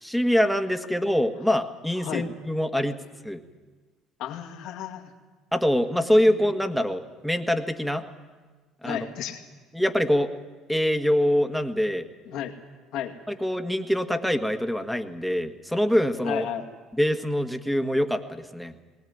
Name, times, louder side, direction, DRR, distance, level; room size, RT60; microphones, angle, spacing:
voice 1, 0.0-3.0 3.2-3.4 5.5-8.0 8.8-9.1 9.7-10.3 10.7-12.1 13.3-16.4 17.0-18.7, equal, ahead, 6 dB, 1.7 m, -24 dB
voice 2, 2.0-2.3 4.2-5.1 6.3-6.4 8.8-9.5 12.3-12.5 12.9-13.1 16.2-16.7, left 10 dB, 70° left, 4 dB, 2.2 m, -33 dB
19.5 x 19.0 x 9.5 m, 1.4 s
supercardioid pair, 75°, 0 cm